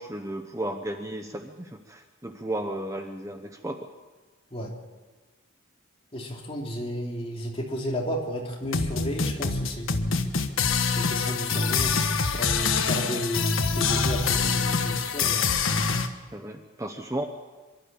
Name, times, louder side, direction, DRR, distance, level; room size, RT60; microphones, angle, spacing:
voice 1, 0.0-3.9 13.0-13.2 16.3-17.2, right 1 dB, 15° right, 5 dB, 0.9 m, -34 dB
voice 2, 6.1-9.9 10.8-15.5, equal, 25° left, -1 dB, 3.1 m, -32 dB
sound 1, 8.6-16.1, left 5 dB, 75° left, 1.4 m, -25 dB
24.5 x 12.5 x 8.7 m, 1.3 s
head